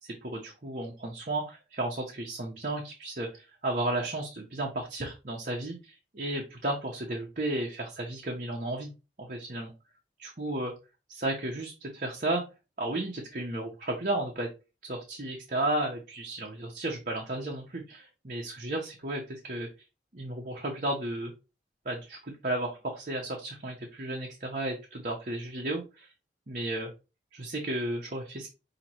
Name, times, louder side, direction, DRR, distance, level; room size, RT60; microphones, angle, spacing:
voice 1, 0.0-8.9 9.2-9.7 10.2-10.7 11.1-12.4 12.8-14.5 14.8-19.7 20.1-21.3 21.8-26.1 26.5-26.9 27.3-28.5, right 1 dB, 45° right, -1 dB, 0.9 m, -33 dB
5.8 x 2.9 x 2.9 m, 0.28 s
head